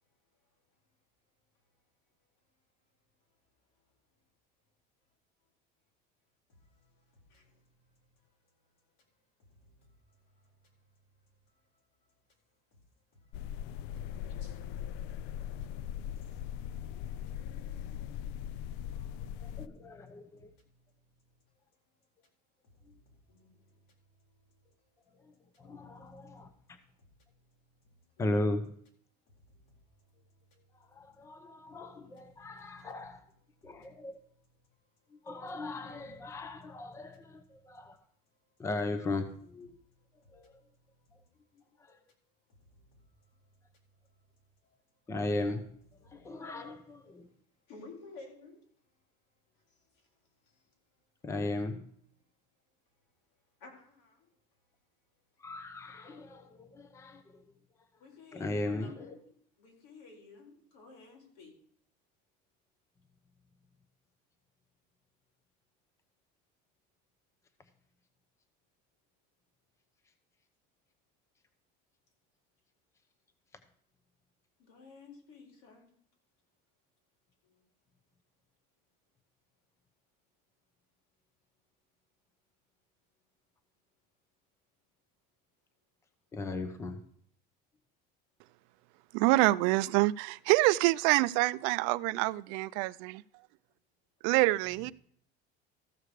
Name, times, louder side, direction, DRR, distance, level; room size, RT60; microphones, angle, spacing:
voice 1, 6.5-8.1 9.5-10.5 13.2-14.8 16.0-17.3 18.7-21.4 22.7-23.8 26.6-28.0 29.3-29.7 32.2-32.9 39.8-41.3 42.6-43.0 46.1-46.3 47.7-48.6 49.7-50.1 50.5-50.6 53.6-54.3 58.0-59.2 59.6-61.6 74.6-75.9 77.4-77.6 89.5-89.9, left 3 dB, 85° left, 4.2 m, -57 dB
sound 1, 13.3-19.7, left 10 dB, 60° left, 0.4 m, -40 dB
voice 2, 19.4-20.5 22.9-23.0 25.2-26.8 28.2-28.7 30.9-33.2 33.6-34.1 35.1-38.0 38.6-39.8 40.3-40.5 41.8-42.0 45.1-45.7 46.0-47.3 51.2-51.8 55.4-57.4 58.3-59.2 86.3-87.0, left 2 dB, 15° left, 0.8 m, -37 dB
voice 3, 89.1-93.1 94.2-94.9, right 20 dB, 80° right, 0.4 m, -26 dB
14.0 x 6.6 x 4.9 m
cardioid pair, 160°, 20 cm